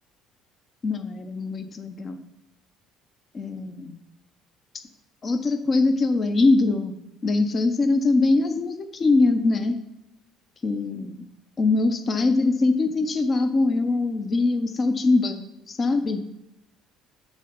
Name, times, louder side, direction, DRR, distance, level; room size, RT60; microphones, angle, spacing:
voice 1, 0.8-2.2 3.3-4.0 5.2-6.9 7.2-9.7 10.6-11.2 11.6-16.2, left 3 dB, 40° left, 9 dB, 0.8 m, -22 dB
7.4 x 3.9 x 5.2 m, 0.89 s
hypercardioid pair, 60°, 0 cm